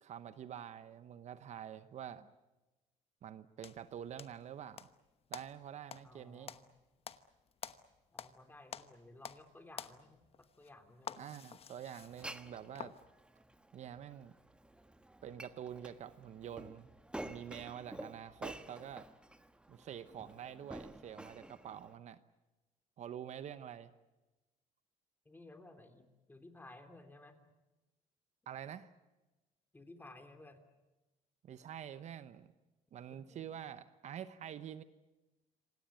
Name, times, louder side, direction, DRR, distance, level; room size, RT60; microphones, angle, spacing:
voice 1, 0.0-2.3 3.2-4.9 5.3-6.5 11.2-12.9 13.7-14.3 15.2-16.9 17.2-19.1 19.7-22.2 23.0-23.9 28.5-28.9 31.4-32.5 32.9-34.8, right 9 dB, 55° right, 12 dB, 0.9 m, -47 dB
sound 1, 3.6-4.9 5.3-8.4 8.7-9.5 9.7-13.0, left 8 dB, 45° left, 1.1 m, -49 dB
voice 2, 6.0-6.6 8.1-11.4 25.2-27.4 29.7-30.6 33.1-33.4, left 2 dB, 15° left, 6 dB, 3.3 m, -56 dB
Glass, 12.0-21.9, right 1 dB, 5° right, 1.2 m, -51 dB
26.5 x 18.0 x 9.2 m, 1.1 s
cardioid pair, 100°, 14 cm